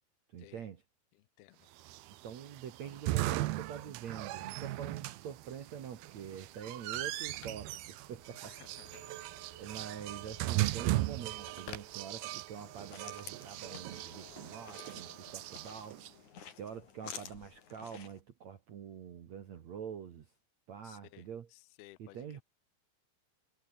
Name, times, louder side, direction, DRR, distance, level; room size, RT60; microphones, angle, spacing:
voice 1, 0.3-0.8 2.2-8.5 9.6-16.0 16.6-20.3 20.7-21.5 22.0-22.4, right 8 dB, 60° right, 1.9 m, -45 dB
voice 2, 1.1-1.7 8.3-9.1 20.8-22.4, left 17 dB, 70° left, 2.7 m, -58 dB
sound 1, 1.8-16.1, right 17 dB, 80° right, 2.3 m, -38 dB
Telephone, 5.0-12.8, left 5 dB, 85° left, 10.5 m, -57 dB
sound 2, 12.5-18.2, left 7 dB, 45° left, 3.7 m, -51 dB
omnidirectional pair, 5.5 m